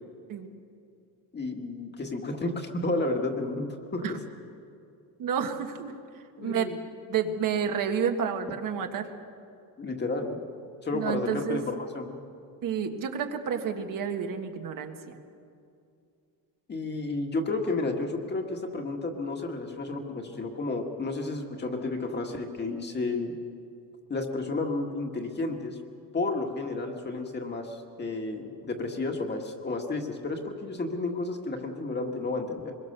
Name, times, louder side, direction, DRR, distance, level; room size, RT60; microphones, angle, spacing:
voice 1, 1.3-4.2 6.4-6.8 9.8-10.4 10.8-12.2 16.7-23.3 24.1-25.8 26.1-32.7, left 2 dB, 25° left, 3 dB, 1.9 m, -32 dB
voice 2, 5.2-5.9 6.4-6.7 7.1-9.1 10.9-11.6 12.6-15.2, right 7 dB, 50° right, 5 dB, 1.6 m, -30 dB
24.5 x 22.0 x 6.8 m, 2.5 s
cardioid pair, 165°, 40 cm